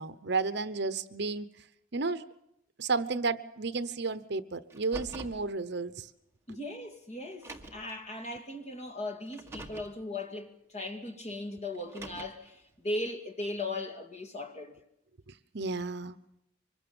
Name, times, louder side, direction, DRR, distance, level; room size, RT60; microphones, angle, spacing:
voice 1, 0.0-1.5 1.9-2.2 2.8-6.1 15.5-16.2, right 4 dB, 60° right, 0.9 m, -32 dB
Car, 4.7-5.4 6.5-6.6 7.3-7.9 9.3-9.9 11.7-12.5, right 2 dB, 15° right, 1.7 m, -45 dB
voice 2, 6.5-14.7, left 2 dB, 35° left, 2.3 m, -38 dB
24.5 x 21.5 x 7.1 m
head